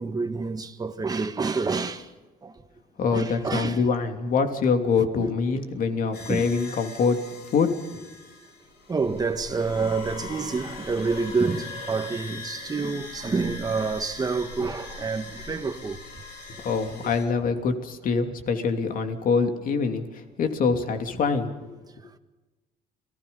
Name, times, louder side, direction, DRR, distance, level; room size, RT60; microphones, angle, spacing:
voice 1, 0.0-2.1 2.4-2.5 3.1-3.8 5.2-5.6 6.3-6.5 8.9-16.0, right 4 dB, 20° right, 1.6 m, -28 dB
voice 2, 3.0-7.2 7.5-7.7 16.5-21.7, left 5 dB, 55° left, 3.0 m, -25 dB
sound 1, 6.1-17.2, left 4 dB, 70° left, 5.5 m, -41 dB
29.5 x 19.5 x 5.5 m
cardioid pair, 110°, 17 cm